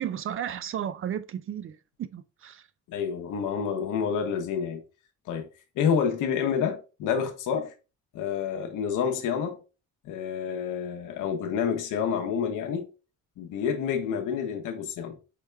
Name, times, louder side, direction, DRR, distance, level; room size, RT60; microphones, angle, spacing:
voice 1, 0.0-2.7, right 10 dB, 45° right, 0.5 m, -34 dB
voice 2, 2.9-4.8 5.3-5.5 5.8-7.7 8.1-9.6 10.0-12.9 13.4-15.2, left 7 dB, 85° left, 0.9 m, -28 dB
4.8 x 2.2 x 3.2 m
cardioid pair, 90°, 30 cm